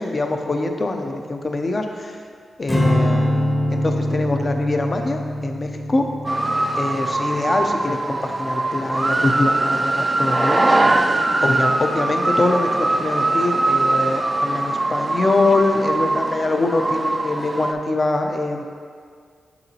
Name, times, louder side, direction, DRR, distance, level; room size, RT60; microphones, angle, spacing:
voice 1, 0.0-2.2 2.6-6.0 6.8-10.8 11.4-18.6, left 2 dB, 35° left, 4 dB, 0.5 m, -23 dB
Strum, 2.7-9.1, left 1 dB, 20° left, 0.8 m, -24 dB
sound 1, 6.2-17.7, right 2 dB, 25° right, 0.3 m, -21 dB
6.8 x 5.9 x 2.8 m, 2.1 s
cardioid pair, 90°, 0 cm